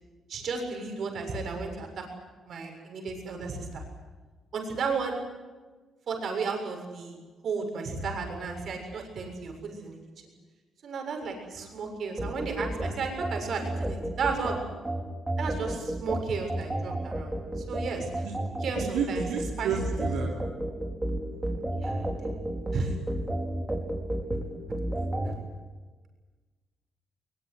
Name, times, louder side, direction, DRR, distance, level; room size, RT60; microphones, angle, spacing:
voice 1, 0.3-2.1 2.4-3.8 4.5-5.2 6.1-7.2 7.4-10.0 10.8-14.6 15.4-18.2 18.6-19.3 19.6-19.7 21.8-22.3 22.7-22.9 25.2-25.3, right 4 dB, 60° right, 3 dB, 7.1 m, -33 dB
sound 1, 12.2-25.3, right 1 dB, 15° right, 5.1 m, -32 dB
voice 2, 18.8-20.3 25.0-25.1, right 7 dB, 85° right, -1 dB, 3.3 m, -31 dB
22.0 x 21.0 x 9.8 m, 1.3 s
cardioid pair, 90°, 0 cm